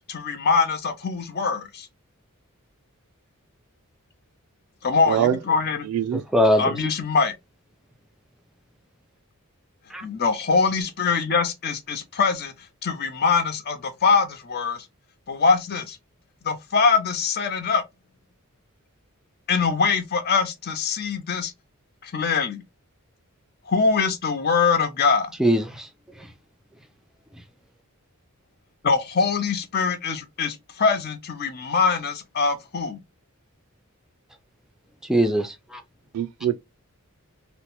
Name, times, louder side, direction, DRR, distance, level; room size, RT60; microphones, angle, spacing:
voice 1, 0.1-1.9 4.8-5.9 6.6-7.3 10.0-12.5 12.8-14.9 15.3-16.0 16.4-17.8 19.5-21.5 22.0-22.6 23.7-25.3 28.8-33.0, left 5 dB, 45° left, 0.6 m, -23 dB
voice 2, 5.1-5.4 5.8-6.2 36.1-36.6, right 10 dB, 85° right, 0.3 m, -23 dB
voice 3, 6.1-6.7 9.9-10.1 25.4-25.9 26.2-26.3 27.3-27.4 35.0-35.8, equal, ahead, 0.4 m, -22 dB
2.9 x 2.1 x 2.9 m
head